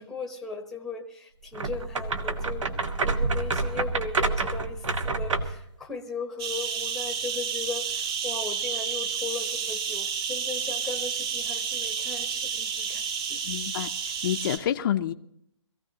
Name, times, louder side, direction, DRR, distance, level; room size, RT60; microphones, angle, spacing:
voice 1, 0.0-13.4, left 4 dB, ahead, 4 dB, 0.9 m, -37 dB
sound 1, 1.5-5.6, right 3 dB, 80° right, 1.4 m, -28 dB
sound 2, 6.4-14.6, right 7 dB, 50° right, 2.6 m, -30 dB
voice 2, 13.4-13.9 14.2-15.1, left 11 dB, 45° left, 6 dB, 0.6 m, -27 dB
22.0 x 15.0 x 2.8 m, 0.73 s
hypercardioid pair, 150°, 16 cm